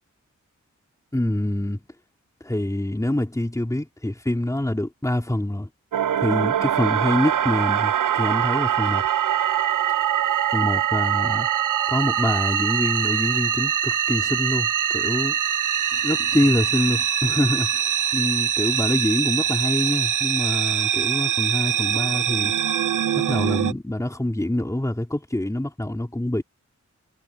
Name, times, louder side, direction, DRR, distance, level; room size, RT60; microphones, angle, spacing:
voice 1, 1.1-1.8 2.4-5.7 6.2-9.0 10.5-11.5 11.9-15.4 16.0-22.5 23.2-26.4, left 1 dB, 10° left, 3.2 m, -25 dB
sound 1, 5.9-23.7, right 10 dB, 85° right, 0.6 m, -23 dB
wide cardioid pair, 105°, 30 cm